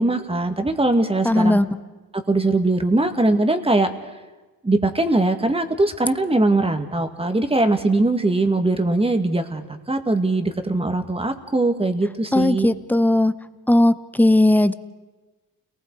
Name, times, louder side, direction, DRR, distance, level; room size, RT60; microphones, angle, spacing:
voice 1, 0.0-1.6 2.3-3.9 4.6-12.7, right 2 dB, 15° right, 7 dB, 1.9 m, -21 dB
voice 2, 1.2-1.7 12.3-13.3 13.7-14.7, left 1 dB, 5° left, 13 dB, 0.8 m, -17 dB
29.5 x 19.5 x 4.7 m, 1.2 s
cardioid pair, 85°, 36 cm